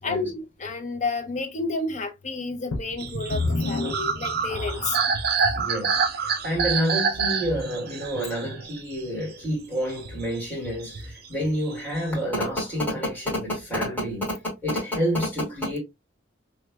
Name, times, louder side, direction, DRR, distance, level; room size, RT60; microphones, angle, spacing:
voice 1, 0.0-5.0, left 3 dB, 35° left, 0.6 m, -30 dB
sound 1, 2.7-5.1 5.8-5.9 6.5-6.6, left 3 dB, 85° left, 0.5 m, -30 dB
sound 2, 3.0-9.5 9.9-11.3 11.5-12.2, right 5 dB, 50° right, 0.5 m, -28 dB
voice 2, 5.5-14.4 14.6-15.8, equal, 10° left, 2.3 m, -28 dB
3.3 x 3.1 x 2.2 m
head